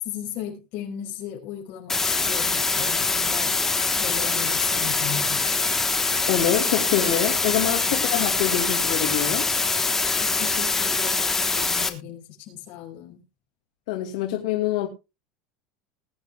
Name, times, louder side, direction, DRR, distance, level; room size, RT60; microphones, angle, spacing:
voice 1, 0.0-3.5 3.9-5.4 10.4-13.2, left 10 dB, 50° left, 5.5 m, -36 dB
sound 1, 1.9-11.9, left 3 dB, 10° left, 1.1 m, -24 dB
voice 2, 6.3-9.5 13.9-14.9, left 11 dB, 85° left, 2.2 m, -25 dB
20.5 x 9.9 x 2.3 m
supercardioid pair, 165°, 4 cm